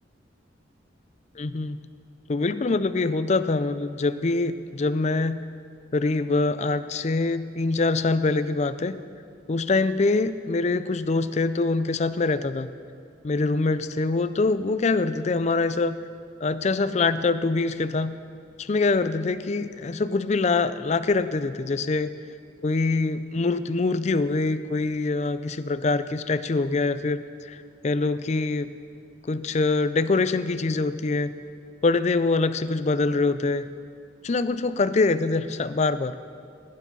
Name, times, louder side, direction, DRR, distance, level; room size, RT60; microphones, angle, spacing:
voice 1, 1.4-1.8 2.3-5.4 5.9-9.0 9.5-12.7 13.2-16.0 16.4-18.1 18.6-22.1 22.6-28.7 29.3-31.3 31.8-33.7 34.2-36.2, left 3 dB, 35° left, 13 dB, 0.4 m, -24 dB
18.5 x 9.7 x 5.4 m, 2.3 s
head